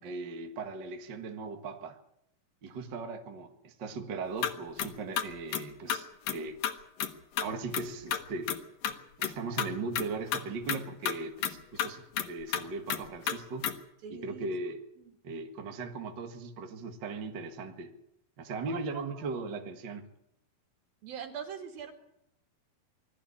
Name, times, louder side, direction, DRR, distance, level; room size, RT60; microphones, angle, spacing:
voice 1, 0.0-2.0 2.6-6.6 7.4-8.6 8.8-13.7 14.1-14.8 15.2-17.9 18.4-20.0, right 3 dB, 45° right, 1.6 m, -38 dB
sound 1, 4.4-4.5 4.8-4.9 5.2-5.6 5.9-6.0 6.3-6.4 6.6-6.7 7.0-7.1 7.4-7.5 7.7-7.8 8.1-8.6 8.8-8.9 9.2-9.3 9.6-9.7 9.9-10.1 10.3-10.4 10.7-10.8 11.0-11.1 11.4-11.5 11.8-11.9 12.2-12.3 12.5-12.6 12.9-13.0 13.3-13.4 13.6-13.7, left 9 dB, 70° left, 2.9 m, -30 dB
voice 2, 14.0-14.5 15.0-15.1 18.7-19.4 21.0-21.9, right 7 dB, 70° right, 4.2 m, -43 dB
21.5 x 13.5 x 9.8 m
omnidirectional pair, 4.4 m